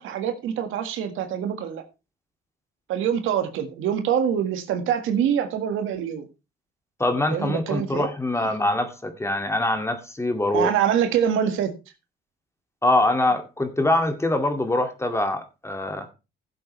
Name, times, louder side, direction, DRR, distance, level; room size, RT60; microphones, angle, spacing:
voice 1, 0.0-1.9 2.9-6.3 7.3-8.1 10.5-11.7, right 9 dB, 90° right, 1.8 m, -25 dB
voice 2, 7.0-10.7 12.8-16.1, left 1 dB, 15° left, 2.2 m, -24 dB
15.5 x 7.8 x 3.2 m
cardioid pair, 90°, 20 cm